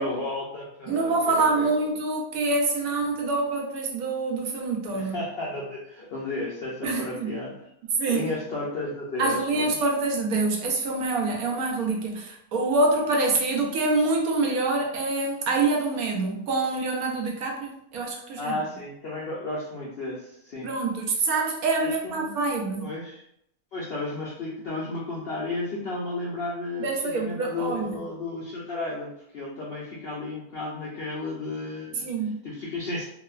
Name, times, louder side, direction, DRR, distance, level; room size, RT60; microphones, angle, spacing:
voice 1, 0.0-1.9 4.9-7.7 8.1-9.7 18.4-20.7 21.8-22.3 22.8-23.2 23.7-32.1 32.4-33.0, left 2 dB, 70° left, -5 dB, 0.5 m, -33 dB
voice 2, 0.9-5.2 6.8-7.3 8.0-8.3 9.2-18.6 20.6-22.9 26.8-28.0 32.0-32.4, right 3 dB, 75° right, 0 dB, 1.0 m, -26 dB
3.1 x 2.0 x 2.3 m, 0.74 s
omnidirectional pair, 1.6 m